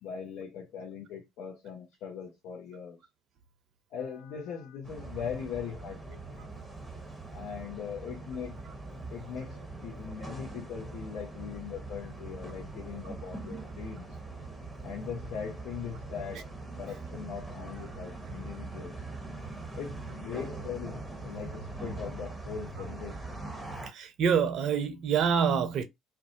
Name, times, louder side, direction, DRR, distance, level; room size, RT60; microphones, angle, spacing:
voice 1, 0.0-3.0 3.9-6.2 7.3-8.6 9.1-14.1 14.8-16.5 16.8-19.0 19.7-23.4, left 7 dB, 65° left, 0.7 m, -40 dB
sound 1, 4.8-23.9, right 2 dB, 5° left, 1.0 m, -42 dB
voice 2, 23.9-25.8, right 7 dB, 60° right, 0.6 m, -26 dB
2.5 x 2.2 x 2.6 m
hypercardioid pair, 55°, 0 cm